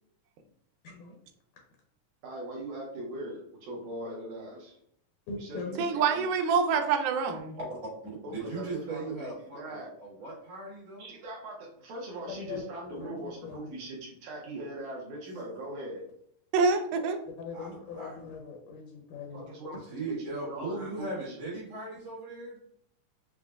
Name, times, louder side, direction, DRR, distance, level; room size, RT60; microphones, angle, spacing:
voice 1, 0.8-1.2 5.3-5.9 12.3-13.8 17.4-19.4, left 4 dB, 80° left, 0 dB, 2.0 m, -41 dB
voice 2, 2.2-4.8 5.4-6.3 8.2-9.9 11.0-16.1 19.3-19.8 20.1-21.4, right 1 dB, 75° right, -3 dB, 1.9 m, -41 dB
voice 3, 5.8-7.6 16.5-17.2, right 5 dB, 90° right, 6 dB, 2.2 m, -26 dB
voice 4, 8.3-11.1 17.5-18.1 19.9-22.6, right 2 dB, 60° right, -6 dB, 2.1 m, -38 dB
5.9 x 2.1 x 2.3 m, 0.68 s
omnidirectional pair, 3.7 m